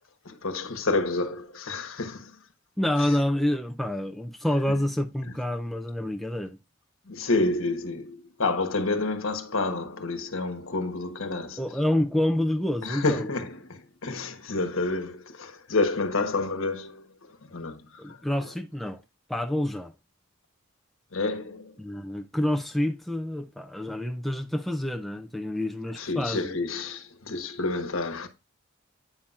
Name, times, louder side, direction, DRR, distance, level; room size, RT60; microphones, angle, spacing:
voice 1, 0.2-2.4 3.0-3.1 7.1-11.6 12.8-18.5 21.1-21.8 26.0-28.3, left 3 dB, 75° left, 1.2 m, -29 dB
voice 2, 2.8-6.6 11.6-13.3 18.0-19.0 19.3-19.9 21.8-26.6, left 1 dB, ahead, 0.4 m, -28 dB
8.7 x 5.6 x 2.4 m
head